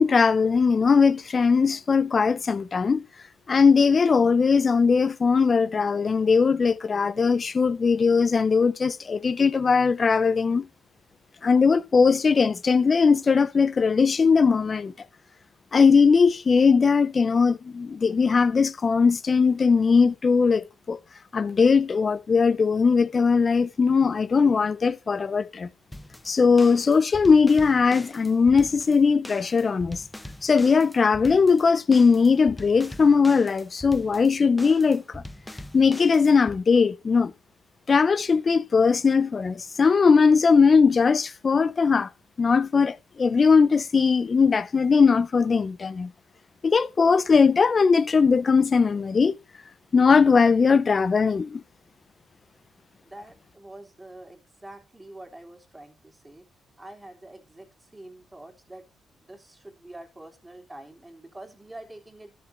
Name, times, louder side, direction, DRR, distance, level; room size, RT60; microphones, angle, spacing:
voice 1, 0.0-3.0 3.5-10.7 11.4-14.9 15.7-21.0 21.3-25.7 26.3-30.0 30.4-35.2 35.7-37.3 37.9-42.1 42.4-46.1 46.6-49.3 49.9-51.6, left 5 dB, 35° left, 0.8 m, -20 dB
sound 1, 25.9-36.6, left 1 dB, 5° left, 1.1 m, -42 dB
voice 2, 53.0-56.5 56.8-58.8 59.1-62.3, right 1 dB, 15° right, 3.3 m, -45 dB
12.5 x 6.8 x 4.4 m
cardioid pair, 90°, 0 cm